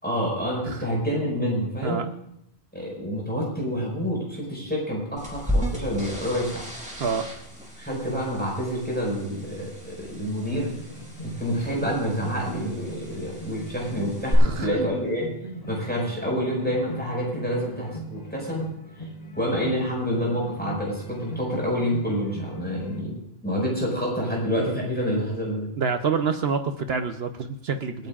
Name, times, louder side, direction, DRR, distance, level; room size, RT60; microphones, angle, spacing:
voice 1, 0.0-2.0 2.7-6.6 7.8-10.7 11.2-15.3 15.7-18.7 19.4-23.2 23.4-25.7 28.0-28.1, equal, 10° left, -3 dB, 5.4 m, -28 dB
sound 1, 5.2-14.3, equal, 5° right, 3.9 m, -35 dB
sound 2, 10.5-23.0, right 1 dB, 35° left, 1.3 m, -40 dB
voice 2, 14.4-14.9 15.4-15.6 25.8-28.1, right 5 dB, 70° right, 7 dB, 1.0 m, -27 dB
28.0 x 9.5 x 2.5 m, 0.78 s
omnidirectional pair, 1.1 m